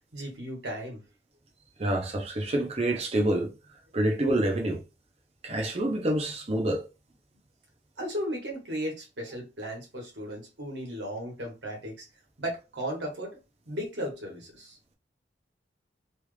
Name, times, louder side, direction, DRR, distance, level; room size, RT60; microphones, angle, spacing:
voice 1, 0.1-1.0 8.0-12.1 12.4-13.3 13.7-14.8, equal, 65° right, 1.5 m, -35 dB
voice 2, 1.8-3.5 3.9-4.8 5.4-6.9, right 1 dB, 35° right, 0.7 m, -27 dB
3.1 x 2.5 x 3.3 m
head